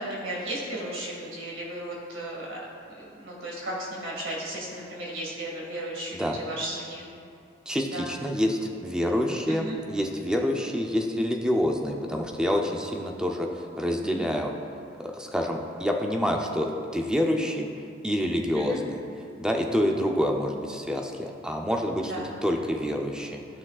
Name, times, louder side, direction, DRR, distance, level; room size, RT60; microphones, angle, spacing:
voice 1, 0.0-2.6 2.9-7.1 7.9-8.1 9.5-9.7 14.2-14.3 18.5-18.8 22.1-22.3, right 1 dB, 85° right, -4 dB, 2.0 m, -35 dB
voice 2, 7.7-14.5 15.0-17.7 18.0-18.9 19.4-22.1 22.4-23.4, equal, 5° right, 1 dB, 0.6 m, -27 dB
13.5 x 6.0 x 2.4 m, 2.4 s
head